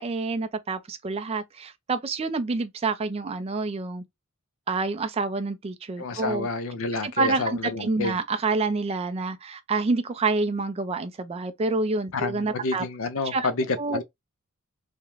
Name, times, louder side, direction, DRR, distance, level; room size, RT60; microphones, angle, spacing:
voice 1, 0.0-4.0 4.7-6.5 7.0-12.8 13.3-13.5 13.8-14.0, right 3 dB, 25° right, 0.3 m, -28 dB
voice 2, 6.0-8.2 12.1-14.0, left 3 dB, 65° left, 0.5 m, -29 dB
2.4 x 2.1 x 3.0 m
head